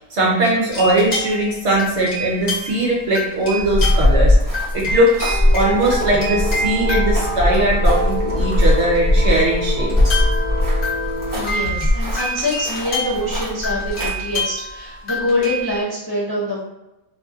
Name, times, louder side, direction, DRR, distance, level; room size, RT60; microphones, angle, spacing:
voice 1, 0.1-4.4 4.7-10.2, right 1 dB, 60° right, -3 dB, 0.8 m, -19 dB
sound 1, 0.7-2.8 3.1-4.3 4.5-8.3 8.9-9.0 9.9-15.8, left 1 dB, 50° left, 1.2 m, -28 dB
sound 2, 3.6-14.1, left 1 dB, 15° right, 0.9 m, -20 dB
sound 3, 5.3-11.4, left 1 dB, 75° left, 1.2 m, -27 dB
voice 2, 11.3-16.6, left 1 dB, 35° left, -8 dB, 0.3 m, -24 dB
3.0 x 2.5 x 2.3 m, 0.96 s
omnidirectional pair, 1.5 m